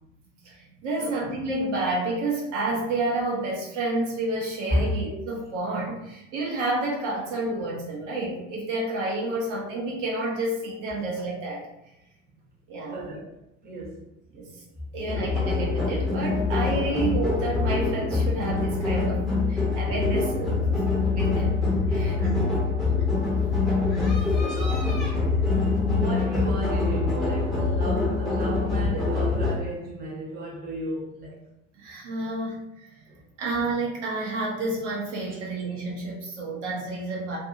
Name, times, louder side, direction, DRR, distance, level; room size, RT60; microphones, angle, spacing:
voice 1, 0.4-11.6 12.7-13.0 14.3-14.5 14.9-21.6 21.9-22.2 23.6-24.2 25.1-25.2 31.8-33.1 33.4-37.4, right 2 dB, 60° right, 1.1 m, -30 dB
voice 2, 12.9-13.2 13.6-14.0 22.2-22.7 24.4-25.0 25.8-31.4 33.1-33.2, right 1 dB, 25° right, 1.1 m, -33 dB
sound 1, 15.1-29.5, left 3 dB, ahead, 1.1 m, -24 dB
2.7 x 2.6 x 2.6 m
figure-of-eight pair, 70°, 39 cm